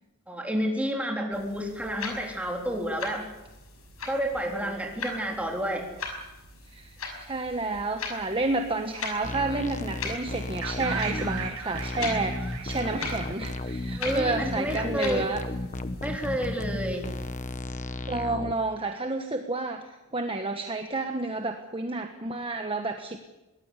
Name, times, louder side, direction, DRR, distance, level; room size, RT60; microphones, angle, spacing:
voice 1, 0.3-3.3 4.0-5.9 13.9-15.3 16.0-17.2, equal, 5° right, 1 dB, 3.6 m, -30 dB
sound 1, 1.3-17.3, left 3 dB, 70° left, 5.9 m, -40 dB
voice 2, 6.7-15.4 18.1-23.2, right 2 dB, 25° right, 5 dB, 1.3 m, -30 dB
sound 2, 9.2-18.5, left 1 dB, 35° left, 1.2 m, -34 dB
sound 3, 10.6-14.5, right 6 dB, 75° right, 4.0 m, -38 dB
22.5 x 19.0 x 8.3 m, 1.0 s
head